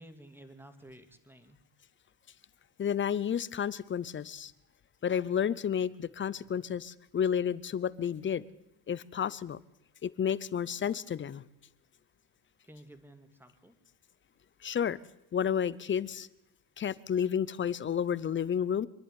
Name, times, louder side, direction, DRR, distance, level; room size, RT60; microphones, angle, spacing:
voice 1, 0.0-1.6 12.7-13.8, right 1 dB, 5° right, 8 dB, 2.2 m, -53 dB
voice 2, 2.8-4.5 5.0-8.4 8.9-9.6 10.0-11.4 14.6-15.0 15.3-16.3 16.8-18.9, left 8 dB, 25° left, 19 dB, 0.7 m, -31 dB
25.0 x 11.0 x 9.9 m, 0.84 s
cardioid pair, 120°, 46 cm